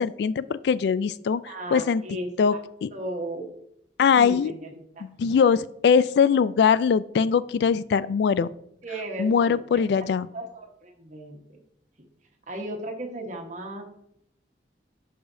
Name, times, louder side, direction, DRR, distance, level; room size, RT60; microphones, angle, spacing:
voice 1, 0.0-1.4 1.7-2.0 2.4-2.5 2.8-2.9 4.0-4.5 5.0-8.5 9.2-10.3, left 6 dB, 70° left, 18 dB, 0.3 m, -21 dB
voice 2, 1.4-2.6 2.9-3.5 4.1-5.0 8.8-9.9 10.3-11.4 12.5-13.8, right 1 dB, 45° right, 2 dB, 1.3 m, -35 dB
11.0 x 5.0 x 2.7 m, 0.75 s
head